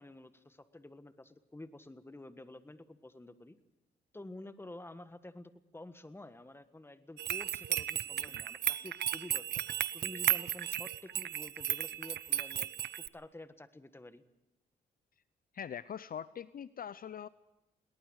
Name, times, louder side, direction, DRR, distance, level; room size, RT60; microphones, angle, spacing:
voice 1, 0.0-3.6 4.1-9.5 9.9-12.7 13.0-14.2, left 2 dB, 15° left, 11 dB, 1.5 m, -50 dB
sound 1, 7.2-13.1, right 10 dB, 65° right, 0.7 m, -34 dB
voice 2, 15.5-17.3, left 8 dB, 50° left, 16 dB, 0.6 m, -42 dB
22.0 x 18.5 x 6.4 m, 0.95 s
cardioid pair, 80°, 18 cm